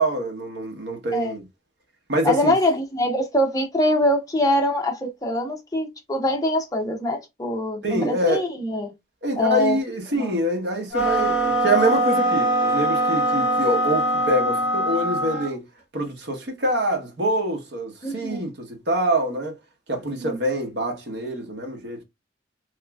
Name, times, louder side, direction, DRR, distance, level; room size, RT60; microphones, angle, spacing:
voice 1, 0.0-1.4 2.1-2.5 7.8-8.4 9.2-15.6 15.9-19.6 19.9-22.0, right 1 dB, 65° right, 1.0 m, -25 dB
voice 2, 2.2-8.9 9.4-9.8 10.1-10.3 18.0-18.5 20.2-20.4, left 1 dB, 20° left, 0.7 m, -23 dB
sound 1, 10.9-15.5, right 1 dB, 5° right, 1.2 m, -22 dB
3.1 x 2.9 x 2.3 m
head